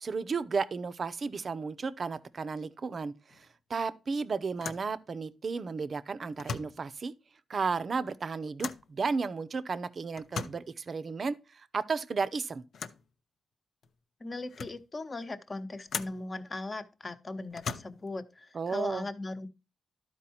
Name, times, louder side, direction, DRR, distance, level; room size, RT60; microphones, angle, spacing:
voice 1, 0.0-7.1 7.5-12.6 18.5-19.1, right 4 dB, 45° right, 0.6 m, -33 dB
sound 1, 3.3-3.5 3.8-3.9 4.5-4.9 6.3-6.8 8.6-8.9 10.1-10.7 12.7-13.1 13.8-13.9 14.3-14.9 15.9-16.3 17.5-18.1, left 6 dB, 70° left, 0.7 m, -39 dB
voice 2, 14.2-19.5, left 2 dB, 30° left, 0.9 m, -39 dB
12.0 x 4.6 x 4.3 m
cardioid pair, 100°, 0 cm